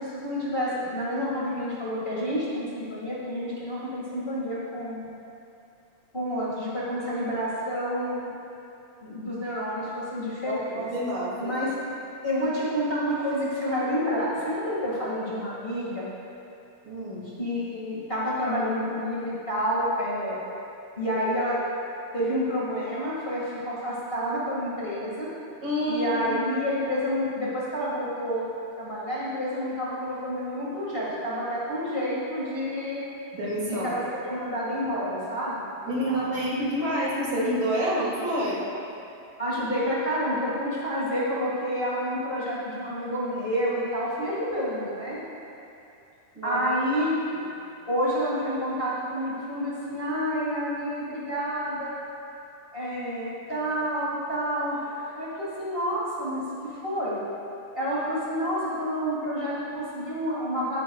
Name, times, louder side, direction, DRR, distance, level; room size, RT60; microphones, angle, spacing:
voice 1, 0.0-5.1 6.1-8.2 9.0-10.8 11.4-11.7 12.2-16.0 17.4-20.4 21.0-21.6 22.1-25.3 25.8-28.4 28.8-33.0 33.7-36.2 39.4-45.2 46.4-47.1 47.9-51.9 52.7-57.2 57.7-60.8, equal, 25° left, -8 dB, 1.2 m, -29 dB
voice 2, 10.5-11.6 16.8-17.3 25.6-26.3 33.3-33.9 35.9-38.6 46.3-46.6, equal, 40° right, -5 dB, 2.2 m, -28 dB
15.5 x 10.0 x 2.3 m, 2.7 s
omnidirectional pair, 4.0 m